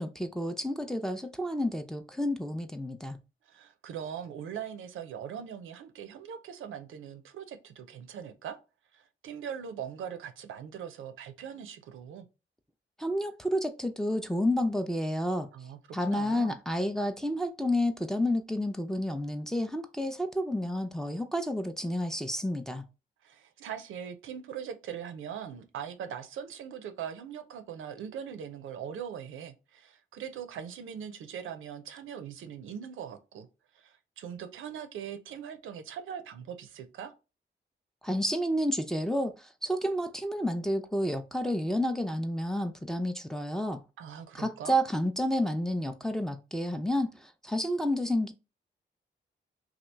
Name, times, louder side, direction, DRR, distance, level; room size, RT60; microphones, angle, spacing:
voice 1, 0.0-3.2 13.0-15.5 15.9-22.8 38.0-39.3 39.6-43.8 44.3-47.1 47.4-48.3, equal, ahead, 0.5 m, -30 dB
voice 2, 3.5-8.6 8.9-12.3 15.5-16.5 23.2-33.5 33.7-37.1 44.0-44.8, right 8 dB, 90° right, 0.5 m, -41 dB
2.8 x 2.4 x 3.3 m
cardioid pair, 55°, 20 cm